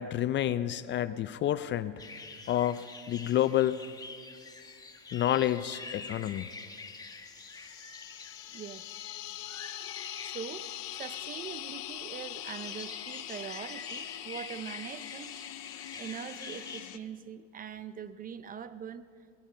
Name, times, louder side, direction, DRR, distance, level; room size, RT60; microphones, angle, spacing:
voice 1, 0.0-2.0 2.5-3.8 5.1-6.5, left 12 dB, 35° left, 14 dB, 0.4 m, -29 dB
sound 1, 2.0-16.8, left 4 dB, 10° left, 1.1 m, -46 dB
sound 2, 7.2-17.0, left 17 dB, 65° left, 0.7 m, -43 dB
voice 2, 8.5-8.8 10.2-15.4 16.0-19.0, right 8 dB, 25° right, 14 dB, 0.5 m, -42 dB
18.0 x 14.0 x 5.5 m, 2.1 s
supercardioid pair, 115°, 32 cm